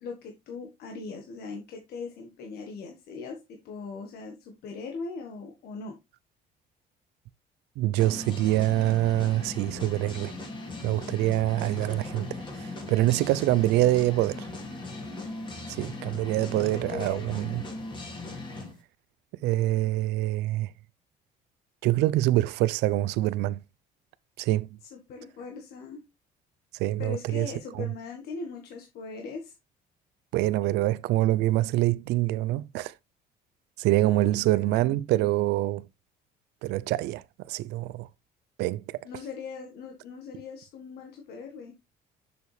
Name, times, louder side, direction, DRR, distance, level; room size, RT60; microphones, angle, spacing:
voice 1, 0.0-6.0 16.5-17.2 24.8-26.0 27.0-29.5 30.6-30.8 34.1-35.0 39.0-41.7, left 4 dB, 70° left, 1.5 m, -40 dB
voice 2, 7.8-10.4 10.8-14.5 15.7-17.6 19.4-20.7 21.8-23.6 24.4-24.7 26.8-27.5 27.7-27.9 30.3-32.9 33.8-35.8 36.6-38.1 38.6-39.0, right 16 dB, 85° right, 0.4 m, -25 dB
sound 1, 8.0-18.7, left 2 dB, 30° left, 2.4 m, -39 dB
6.8 x 6.7 x 3.2 m
cardioid pair, 110°, 17 cm